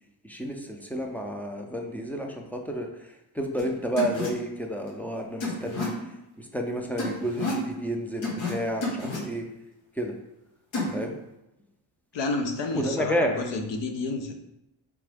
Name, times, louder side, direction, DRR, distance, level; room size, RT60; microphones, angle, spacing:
voice 1, 0.2-9.5 9.9-10.2 10.9-11.1 12.7-13.5, equal, 5° left, 1 dB, 0.4 m, -31 dB
sound 1, 3.6-3.7 4.0-4.3 5.4-5.9 7.0-7.6 8.2-8.5 8.8-9.2 10.7-10.9, left 2 dB, 85° left, 1.5 m, -29 dB
voice 2, 12.1-14.3, left 3 dB, 70° left, 5 dB, 0.8 m, -30 dB
3.7 x 3.4 x 3.4 m, 0.91 s
cardioid pair, 110°, 45 cm